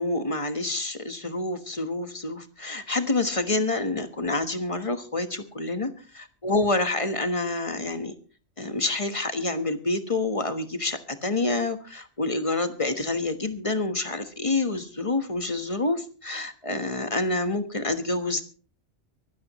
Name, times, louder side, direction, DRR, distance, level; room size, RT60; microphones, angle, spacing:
voice 1, 0.0-5.9 6.4-8.1 8.6-18.4, left 2 dB, 30° left, 9 dB, 1.3 m, -27 dB
24.0 x 13.0 x 3.0 m, 0.37 s
omnidirectional pair, 1.2 m